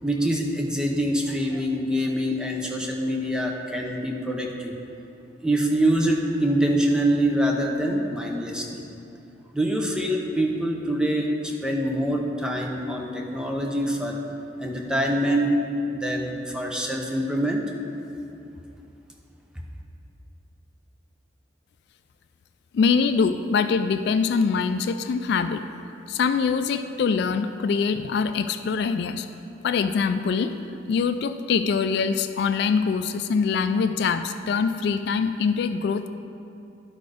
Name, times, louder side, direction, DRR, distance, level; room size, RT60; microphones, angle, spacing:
voice 1, 0.0-4.7 5.4-8.8 9.5-14.2 14.6-15.5 15.9-17.6, right 1 dB, 5° right, 0 dB, 0.7 m, -25 dB
voice 2, 22.7-25.6 26.1-29.3 29.6-30.5 30.9-36.1, left 5 dB, 65° left, 10 dB, 0.3 m, -23 dB
11.5 x 4.3 x 4.9 m, 2.8 s
head